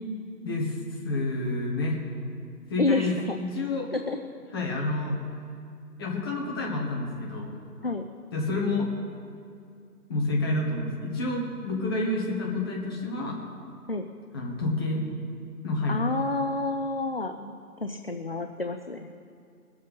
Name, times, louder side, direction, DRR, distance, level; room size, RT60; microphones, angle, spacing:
voice 1, 0.4-0.8 1.0-2.0 2.7-3.9 4.5-5.1 6.0-7.5 8.3-8.9 10.1-13.4 14.3-15.0 15.6-16.0, left 2 dB, 15° left, -2 dB, 1.4 m, -29 dB
voice 2, 2.8-3.4 3.9-4.2 7.8-8.0 13.9-14.0 15.9-17.5 17.8-19.1, left 2 dB, 40° left, 6 dB, 0.5 m, -29 dB
20.0 x 7.8 x 5.5 m, 2.4 s
figure-of-eight pair, 155°, 48 cm